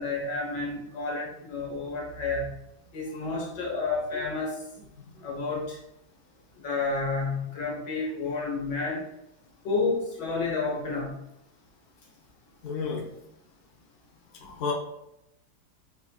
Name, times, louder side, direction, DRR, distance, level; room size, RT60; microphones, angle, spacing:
voice 1, 0.0-2.5 2.9-4.5 5.2-5.8 6.6-9.0 9.6-11.1, left 3 dB, 80° left, -3 dB, 1.9 m, -30 dB
voice 2, 12.6-13.1 14.4-14.7, left 5 dB, 50° left, -1 dB, 0.9 m, -32 dB
6.2 x 2.9 x 2.3 m, 0.85 s
omnidirectional pair, 1.8 m